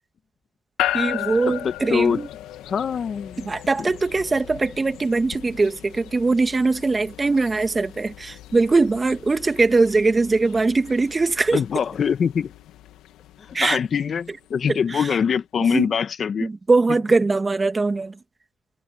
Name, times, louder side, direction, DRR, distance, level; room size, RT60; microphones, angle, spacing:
sound 1, 0.8-15.1, left 14 dB, 80° left, 2.0 m, -36 dB
voice 1, 0.9-2.3 3.4-11.6 13.5-13.8 14.7-15.0 15.7-15.9 16.4-18.1, right 3 dB, 30° right, 2.0 m, -21 dB
voice 2, 1.5-2.2 2.6-3.5 3.8-3.9 11.5-12.5 13.4-16.5, left 7 dB, 55° left, 1.6 m, -24 dB
supercardioid pair, 60°, 0 cm